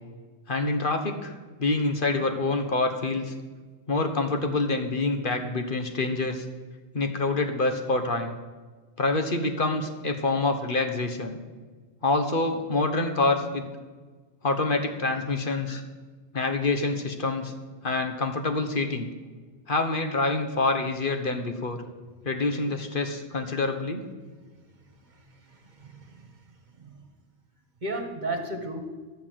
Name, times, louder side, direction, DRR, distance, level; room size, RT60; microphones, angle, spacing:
voice 1, 0.5-1.3 1.6-3.3 3.9-6.4 6.9-8.3 9.0-11.4 12.0-13.6 14.4-15.8 16.3-17.5 17.8-19.1 19.7-21.8 22.2-24.0, left 3 dB, 55° left, 6 dB, 1.3 m, -26 dB
voice 2, 25.5-26.3 26.8-27.0 27.8-28.8, right 2 dB, 45° right, 6 dB, 1.4 m, -34 dB
13.0 x 7.0 x 7.5 m, 1.4 s
omnidirectional pair, 1.0 m